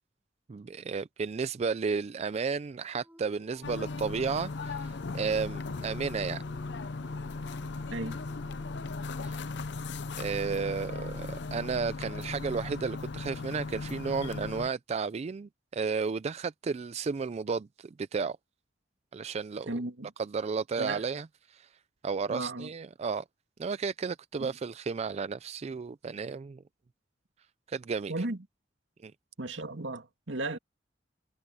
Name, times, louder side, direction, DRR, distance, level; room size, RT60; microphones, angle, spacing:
voice 1, 0.5-6.4 9.2-9.4 10.2-18.4 19.1-19.7 20.2-21.7 22.0-23.2 23.6-26.6 27.7-28.2 29.0-29.1, right 5 dB, 35° right, 0.4 m, -33 dB
Dog, 3.0-9.3, equal, 10° right, 3.5 m, -56 dB
sound 1, 3.6-14.7, left 3 dB, 70° left, 0.7 m, -37 dB
voice 2, 19.7-20.1 20.8-21.0 22.3-22.7 24.4-24.5 28.1-28.4 29.4-30.6, right 2 dB, 80° right, 2.4 m, -35 dB
head